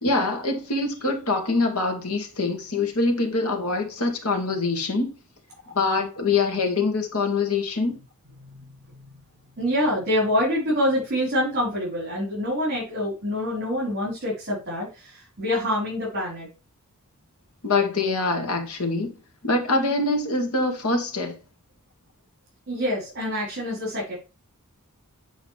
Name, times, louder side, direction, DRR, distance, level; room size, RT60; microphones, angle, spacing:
voice 1, 0.0-5.1 5.8-8.0 17.6-19.2 19.4-21.3, left 3 dB, 70° left, 2.1 m, -24 dB
voice 2, 9.6-16.5 22.7-24.2, left 1 dB, 45° right, 4.5 m, -26 dB
8.5 x 4.9 x 3.4 m
head